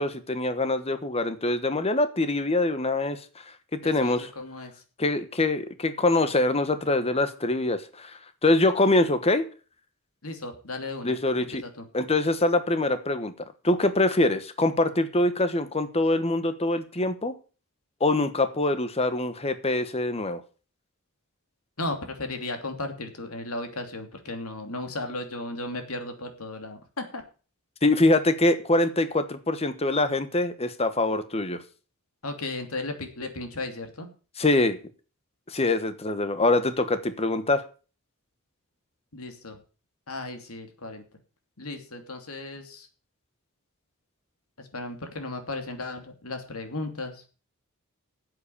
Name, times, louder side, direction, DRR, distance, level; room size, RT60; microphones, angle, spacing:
voice 1, 0.0-4.3 5.0-9.5 11.0-11.6 11.9-17.3 18.0-20.4 27.8-31.6 34.4-34.8 35.5-37.6, left 2 dB, 30° left, 11 dB, 1.2 m, -24 dB
voice 2, 3.8-4.8 10.2-11.9 21.8-27.2 32.2-34.1 39.1-39.6 40.1-41.0 41.6-42.9 44.6-47.2, left 2 dB, 75° left, 6 dB, 2.8 m, -35 dB
9.9 x 8.0 x 8.6 m, 0.37 s
head